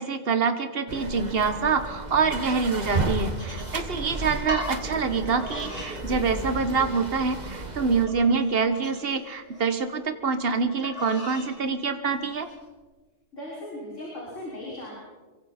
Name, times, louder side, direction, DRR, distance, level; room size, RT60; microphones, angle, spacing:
voice 1, 0.0-12.5, right 5 dB, 50° right, 8 dB, 1.6 m, -26 dB
sound 1, 0.9-8.1, right 2 dB, 35° right, 1.8 m, -33 dB
sound 2, 2.8-4.0 4.5-4.7 5.3-5.9 6.3-6.8 7.3-7.4 8.1-9.6 10.8-11.5 12.1-12.6, left 1 dB, 30° left, 7.6 m, -39 dB
voice 2, 13.3-15.0, left 1 dB, 75° left, -6 dB, 6.4 m, -37 dB
28.0 x 23.5 x 4.4 m, 1.3 s
omnidirectional pair, 1.3 m